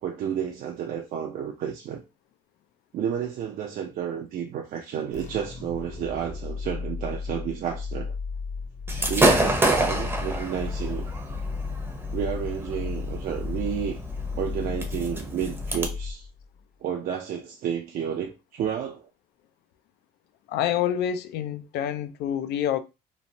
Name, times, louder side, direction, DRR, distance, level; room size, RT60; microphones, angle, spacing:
voice 1, 0.0-2.0 2.9-8.1 9.1-11.1 12.1-14.0 14.4-16.3 16.8-19.1, right 8 dB, 55° right, 0.4 m, -31 dB
sound 1, 5.1-16.6, left 4 dB, 45° left, 0.7 m, -34 dB
Gunshot gunfire / Fireworks, 8.9-15.9, right 1 dB, 15° right, 0.6 m, -28 dB
voice 2, 20.5-22.8, left 10 dB, 75° left, 0.4 m, -27 dB
3.0 x 2.0 x 2.6 m
cardioid pair, 110°, 17 cm